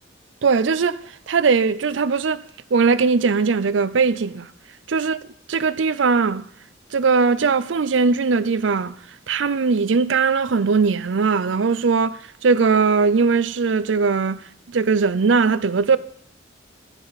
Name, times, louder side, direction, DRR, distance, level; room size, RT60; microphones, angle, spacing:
voice 1, 0.4-2.4 2.7-4.5 4.9-5.2 5.5-6.5 6.9-9.0 9.3-14.4 14.7-16.0, right 5 dB, 75° right, 0.5 m, -19 dB
15.0 x 8.8 x 4.1 m
head